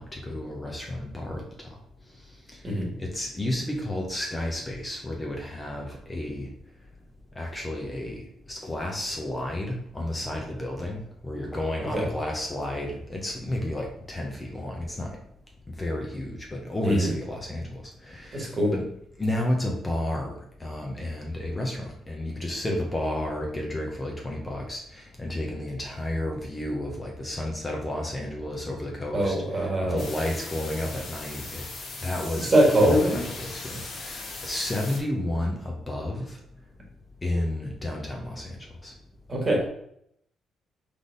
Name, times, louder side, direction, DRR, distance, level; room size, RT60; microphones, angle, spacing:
voice 1, 0.0-1.4 3.0-6.5 7.4-15.2 15.7-18.8 19.2-31.6 32.0-36.4 37.2-38.9, left 1 dB, 20° left, 0 dB, 0.9 m, -32 dB
voice 2, 18.3-18.7 29.1-30.0 32.3-33.2 39.3-39.7, right 1 dB, 30° right, -1 dB, 1.7 m, -22 dB
sound 1, 30.0-35.0, left 3 dB, 55° left, 1.2 m, -39 dB
3.8 x 3.4 x 3.9 m, 0.72 s
cardioid pair, 90°, 0 cm